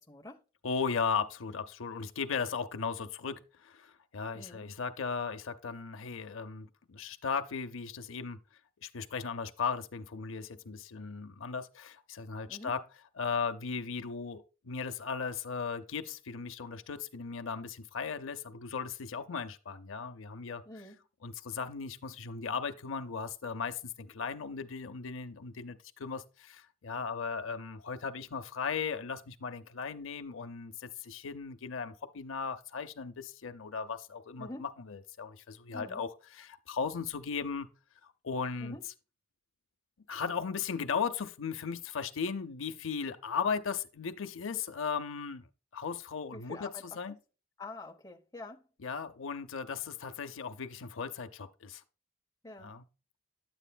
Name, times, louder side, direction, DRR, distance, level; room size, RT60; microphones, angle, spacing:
voice 1, 0.1-0.4 4.3-4.7 12.5-12.7 20.7-21.0 34.4-34.7 35.7-36.0 38.6-38.8 46.3-47.0 47.6-48.6 52.4-52.7, left 2 dB, 15° left, 0.8 m, -46 dB
voice 2, 0.6-8.4 8.8-12.8 13.2-20.6 21.2-37.7 38.0-38.8 40.1-45.5 45.7-47.2 48.8-51.8 52.6-52.8, left 5 dB, 75° left, 0.6 m, -37 dB
9.9 x 7.8 x 2.2 m
head